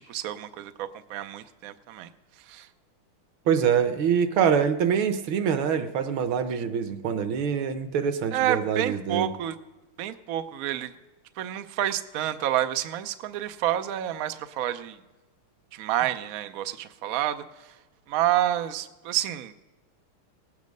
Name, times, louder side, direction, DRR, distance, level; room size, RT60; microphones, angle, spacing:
voice 1, 0.0-2.1 2.4-2.7 6.5-6.6 8.3-9.6 10.0-10.9 11.4-15.0 15.7-17.8 18.1-19.5, right 12 dB, 90° right, 10 dB, 0.7 m, -29 dB
voice 2, 3.5-9.3, right 7 dB, 70° right, 10 dB, 1.6 m, -25 dB
18.5 x 8.4 x 5.2 m, 1.1 s
omnidirectional pair, 2.3 m